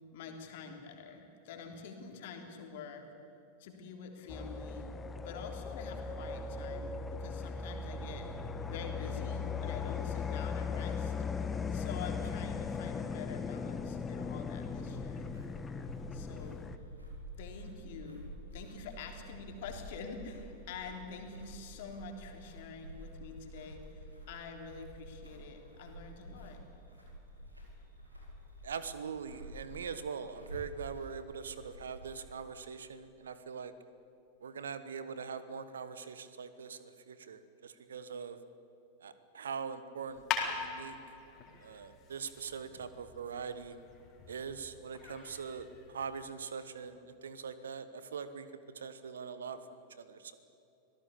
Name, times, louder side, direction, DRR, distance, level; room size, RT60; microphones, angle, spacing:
voice 1, 0.1-3.1 3.6-4.9 5.2-8.3 8.7-15.3 16.1-16.7 17.4-26.6, left 5 dB, 50° left, 3 dB, 3.4 m, -47 dB
sound 1, 4.3-16.8, left 5 dB, 15° left, 1.2 m, -38 dB
sound 2, 14.6-32.4, right 1 dB, 85° right, 4.7 m, -50 dB
voice 2, 28.6-33.7 34.4-38.4 39.0-41.0 41.6-43.7 44.3-48.5 48.7-50.4, right 6 dB, 65° right, 13 dB, 1.3 m, -42 dB
sound 3, 40.1-46.2, left 6 dB, 35° left, 4.0 m, -42 dB
25.5 x 17.5 x 8.6 m, 2.8 s
figure-of-eight pair, 90°, 0 cm